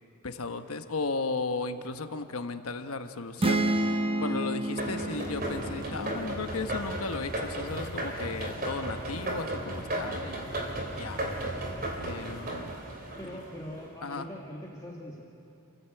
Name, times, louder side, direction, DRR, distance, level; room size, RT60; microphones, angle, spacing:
voice 1, 0.2-11.3 12.0-12.8 14.0-14.3, left 3 dB, 90° left, 8 dB, 1.1 m, -35 dB
sound 1, 3.4-7.1, right 1 dB, 25° right, 1.0 m, -30 dB
sound 2, 4.8-13.9, right 1 dB, 45° right, 3.1 m, -35 dB
voice 2, 13.2-15.2, equal, 15° left, -3 dB, 1.9 m, -42 dB
29.0 x 14.5 x 7.8 m, 2.7 s
head